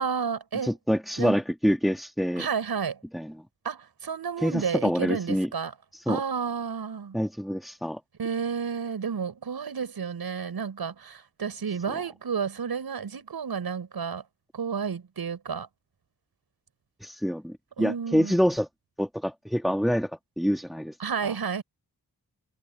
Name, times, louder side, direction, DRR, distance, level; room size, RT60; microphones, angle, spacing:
voice 1, 0.0-0.8 1.2-1.4 2.4-3.0 3.6-5.7 6.1-7.2 8.2-14.2 14.5-15.7 17.8-18.4 21.0-21.6, right 6 dB, 75° right, 6.5 m, -31 dB
voice 2, 0.6-2.5 3.1-3.3 4.4-5.5 5.9-6.2 7.1-8.0 17.0-18.7 19.0-20.1 20.4-21.0 21.2-21.4, equal, ahead, 2.2 m, -26 dB
wide cardioid pair, 160°, 38 cm